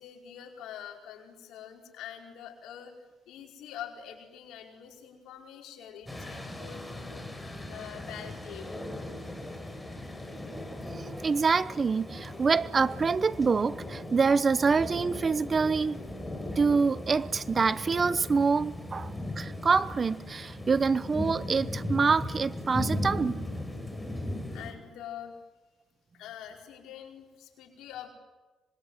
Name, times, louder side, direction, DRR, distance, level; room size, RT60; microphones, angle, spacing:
voice 1, 0.0-3.0 3.2-8.8 24.5-25.3 26.1-28.1, left 9 dB, 85° left, 5.1 m, -45 dB
sound 1, 6.1-24.7, left 1 dB, 5° left, 5.8 m, -38 dB
voice 2, 11.2-16.0 16.6-23.4, right 5 dB, 35° right, 0.8 m, -26 dB
25.5 x 22.0 x 9.2 m
cardioid pair, 90°, 0 cm